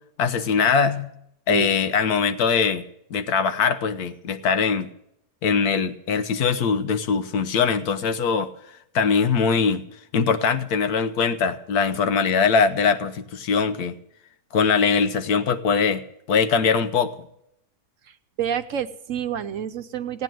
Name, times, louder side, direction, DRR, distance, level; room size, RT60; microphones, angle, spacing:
voice 1, 0.2-1.1 1.5-2.8 3.1-4.9 5.4-8.5 8.9-9.9 10.1-14.0 14.5-16.0 16.3-17.1, left 5 dB, 75° left, 9 dB, 1.4 m, -21 dB
voice 2, 1.5-1.8 18.4-20.2, right 9 dB, 60° right, 9 dB, 1.0 m, -28 dB
17.0 x 9.3 x 7.7 m, 0.76 s
omnidirectional pair, 1.7 m